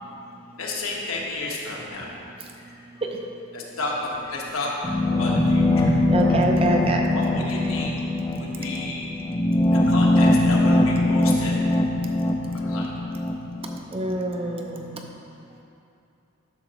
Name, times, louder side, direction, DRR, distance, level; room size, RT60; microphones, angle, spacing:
voice 1, 0.6-2.2 2.5-2.9 3.5-4.7 5.0-6.0 7.1-8.0 8.4-9.1 9.7-11.6 12.5-13.0, left 2 dB, 85° left, -3 dB, 1.3 m, -32 dB
sound 1, 4.8-13.8, left 1 dB, 20° left, 0.4 m, -21 dB
voice 2, 6.1-7.2 13.9-15.1, right 2 dB, 25° right, 2 dB, 0.6 m, -26 dB
10.5 x 6.5 x 3.0 m, 2.7 s
head